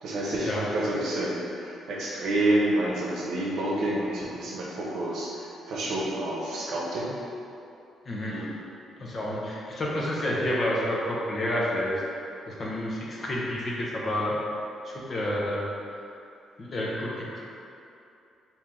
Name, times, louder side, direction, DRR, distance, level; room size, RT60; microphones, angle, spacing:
voice 1, 0.0-7.1 8.3-8.5, right 1 dB, 75° right, -5 dB, 0.8 m, -29 dB
voice 2, 9.0-11.9 12.5-14.4 14.8-15.7 16.6-17.4, left 1 dB, 45° left, -5 dB, 0.7 m, -29 dB
3.0 x 2.7 x 3.6 m, 2.7 s
cardioid pair, 90°, 0 cm